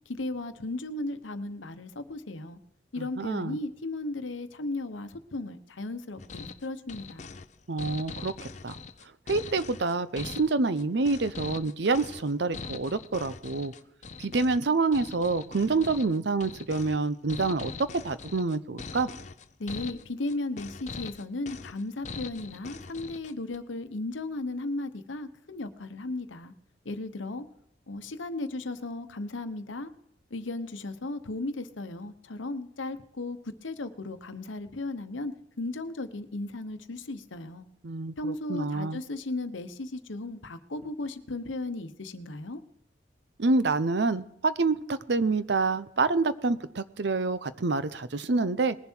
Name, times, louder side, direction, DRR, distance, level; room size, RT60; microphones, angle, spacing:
voice 1, 0.1-2.6 2.9-7.3 19.6-26.5 26.8-27.5 27.9-29.9 30.3-37.7 38.2-42.6, left 2 dB, 90° left, 10 dB, 1.0 m, -35 dB
voice 2, 3.0-3.6 7.7-8.3 8.6-8.8 9.3-13.7 14.2-17.7 18.0-19.1 37.8-39.0 43.4-48.8, right 3 dB, 65° right, 14 dB, 0.7 m, -27 dB
sound 1, 6.2-23.6, left 4 dB, 40° left, 0.6 m, -42 dB
20.5 x 7.2 x 4.5 m, 0.75 s
head